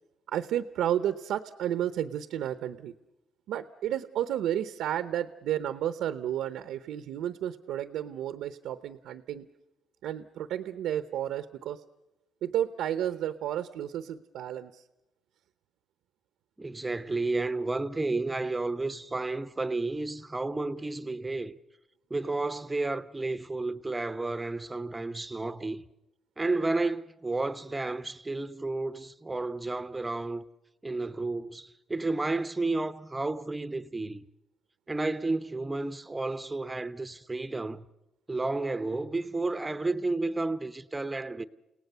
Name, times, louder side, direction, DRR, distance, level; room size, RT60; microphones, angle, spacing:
voice 1, 0.3-2.9 3.5-9.5 10.0-11.8 12.4-14.8, right 11 dB, 85° right, 0.8 m, -32 dB
voice 2, 16.6-21.6 22.1-25.8 26.4-30.4 30.8-34.2 34.9-37.9 38.3-41.5, right 2 dB, 15° right, 0.9 m, -31 dB
30.0 x 18.0 x 6.8 m
cardioid pair, 90°, 0 cm